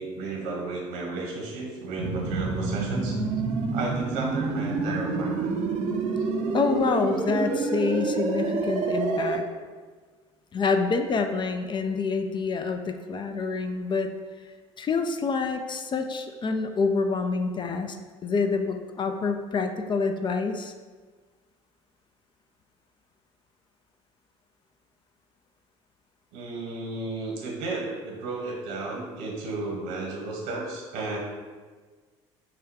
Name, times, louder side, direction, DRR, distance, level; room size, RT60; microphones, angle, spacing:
voice 1, 0.0-3.2 3.7-5.5 26.3-31.2, right 3 dB, 70° right, -1 dB, 1.3 m, -33 dB
sound 1, 2.0-9.4, right 4 dB, 50° right, 0.7 m, -28 dB
voice 2, 6.5-9.4 10.5-14.1 14.8-18.0 18.2-20.7, left 4 dB, 30° left, 6 dB, 0.5 m, -27 dB
4.8 x 2.3 x 4.8 m, 1.4 s
hypercardioid pair, 65°, 15 cm